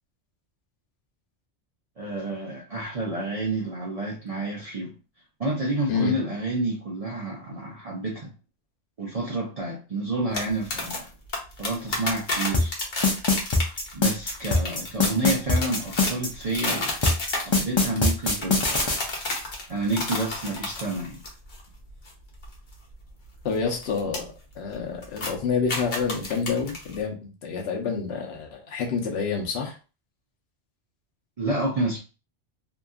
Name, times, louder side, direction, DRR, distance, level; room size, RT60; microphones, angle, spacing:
voice 1, 2.0-4.9 5.4-8.3 9.0-11.1 11.6-12.7 13.9-17.2 17.4-18.9 19.7-21.2 31.4-32.0, right 2 dB, 45° right, 0.5 m, -29 dB
sound 1, 10.3-21.6 21.9-22.1 22.4-24.2 24.5-24.7 25.0-27.0, left 2 dB, 50° left, 0.9 m, -32 dB
sound 2, 12.5-16.3 17.0-19.0, left 3 dB, 35° left, 0.5 m, -21 dB
voice 2, 23.4-29.8, left 5 dB, 70° left, 1.0 m, -28 dB
2.8 x 2.6 x 2.3 m
omnidirectional pair, 1.1 m